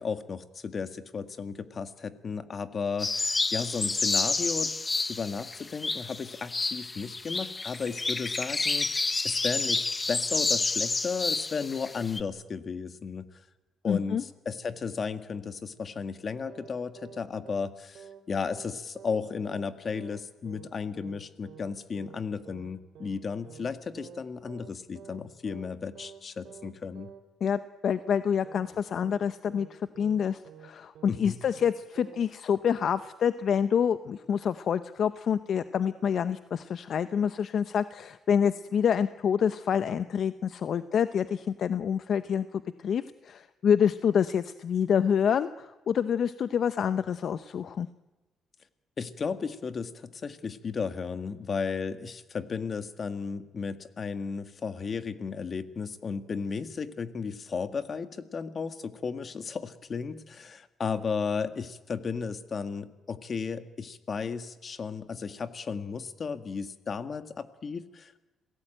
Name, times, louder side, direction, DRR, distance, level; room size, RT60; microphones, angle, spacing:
voice 1, 0.0-4.7 5.1-13.3 13.8-27.1 31.1-31.4 49.0-68.2, left 5 dB, 45° left, 10 dB, 1.8 m, -34 dB
sound 1, 3.0-12.2, left 3 dB, 25° left, 1.0 m, -29 dB
voice 2, 13.9-14.2 27.4-47.9, left 8 dB, 60° left, 12 dB, 0.8 m, -27 dB
sound 2, 16.5-16.7 17.0-17.2 17.5-17.7 18.0-18.2 18.5-18.7 19.0-19.2 19.5-19.7 20.0-20.2 20.5-20.7 21.0-21.2 21.5-21.7 22.0-22.2 22.5-22.7 23.0-23.2 23.5-23.7 24.0-24.2 24.5-24.7 25.0-25.2 25.5-25.7 26.0-26.2 26.5-26.7 27.0-27.2 27.5-27.7 28.0-28.2 28.5-28.7 29.0-29.2 29.5-29.7 30.0-30.2 30.5-30.7 31.0-31.2 31.5-31.7 32.0-32.2, right 8 dB, 85° right, 3.1 m, -48 dB
27.0 x 17.5 x 9.1 m, 1.1 s
cardioid pair, 90°, 0 cm